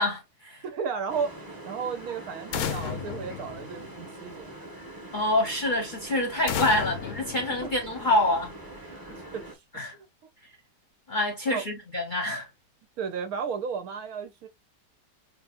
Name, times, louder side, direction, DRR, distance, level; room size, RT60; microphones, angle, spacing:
voice 1, 0.0-0.6 5.1-8.5 9.7-10.0 11.1-12.5, left 1 dB, 40° left, 0.8 m, -26 dB
voice 2, 0.6-4.5 7.6-7.7 9.1-9.6 9.9-10.1 11.5-11.6 13.0-14.5, right 6 dB, 70° right, 1.0 m, -34 dB
sound 1, 1.1-9.6, right 1 dB, 15° right, 0.8 m, -43 dB
sound 2, 2.5-4.3 6.5-8.2, left 9 dB, 70° left, 1.0 m, -34 dB
4.8 x 2.6 x 2.3 m
omnidirectional pair, 1.8 m